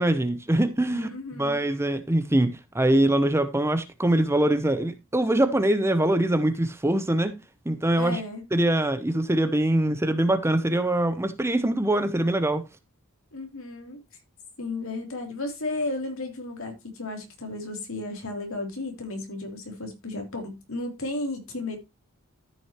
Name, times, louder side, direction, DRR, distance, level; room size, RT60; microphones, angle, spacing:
voice 1, 0.0-7.3 7.7-8.2 8.5-12.6, right 1 dB, 10° right, 0.8 m, -23 dB
voice 2, 0.9-1.7 7.9-8.4 13.3-14.0 14.6-21.8, left 2 dB, 70° left, 3.2 m, -34 dB
13.5 x 6.2 x 3.0 m
head